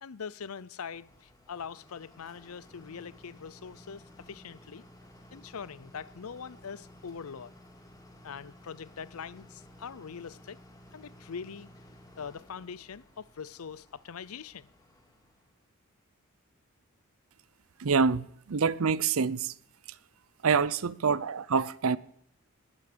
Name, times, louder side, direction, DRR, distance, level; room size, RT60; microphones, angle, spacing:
voice 1, 0.0-4.9 5.3-7.5 8.2-10.6 10.9-11.7 12.2-14.7, left 6 dB, 90° left, 0.6 m, -42 dB
sound 1, 0.9-15.6, left 1 dB, 20° left, 3.0 m, -55 dB
voice 2, 17.8-19.5 20.4-22.0, right 5 dB, 75° right, 0.6 m, -26 dB
20.0 x 9.5 x 6.9 m
head